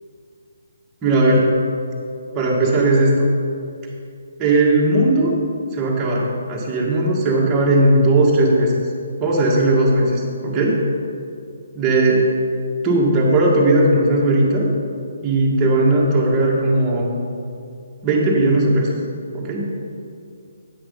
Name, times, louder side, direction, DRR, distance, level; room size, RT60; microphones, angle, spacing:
voice 1, 1.0-1.5 2.3-3.3 4.4-5.3 5.7-8.7 9.2-10.8 11.7-12.2 12.8-14.7 15.2-17.1 18.0-18.9 19.3-19.6, right 2 dB, 20° right, -5 dB, 1.7 m, -17 dB
9.0 x 5.9 x 5.3 m, 2.4 s
figure-of-eight pair, 145°, 0 cm